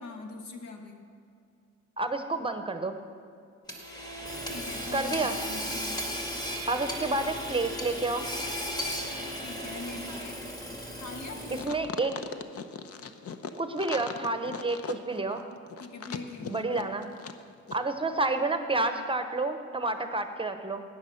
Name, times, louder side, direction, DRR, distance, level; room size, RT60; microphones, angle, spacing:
voice 1, 0.0-1.0 4.5-6.0 9.4-10.4 11.0-11.7 15.8-16.8, left 3 dB, 70° left, 4 dB, 1.7 m, -42 dB
voice 2, 2.0-3.0 4.9-5.4 6.7-8.3 11.6-12.1 13.6-15.4 16.5-17.1 17.7-20.8, right 2 dB, 15° right, 8 dB, 0.9 m, -29 dB
Hammer / Sawing, 3.7-11.9, equal, 15° left, 2.1 m, -36 dB
sound 1, 11.5-17.4 17.7-17.8, left 6 dB, 50° left, 0.8 m, -39 dB
14.0 x 9.6 x 5.8 m, 2.4 s
cardioid pair, 90°, 30 cm